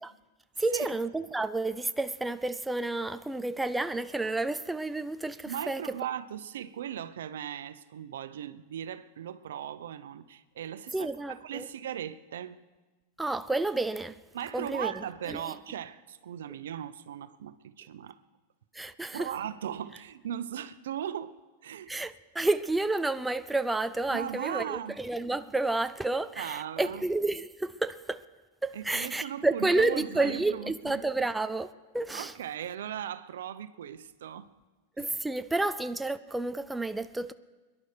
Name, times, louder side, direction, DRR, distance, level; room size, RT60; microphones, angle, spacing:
voice 1, 0.6-5.8 10.9-11.7 13.2-14.2 14.5-15.5 18.7-19.3 21.9-28.2 28.6-32.3 35.0-37.3, right 2 dB, 5° right, 0.4 m, -30 dB
voice 2, 5.4-12.6 14.3-18.2 19.1-21.3 21.6-21.9 24.1-25.0 26.4-27.0 28.7-31.0 32.1-34.5, right 10 dB, 85° right, 0.8 m, -38 dB
23.0 x 11.0 x 5.1 m
supercardioid pair, 150°, 0 cm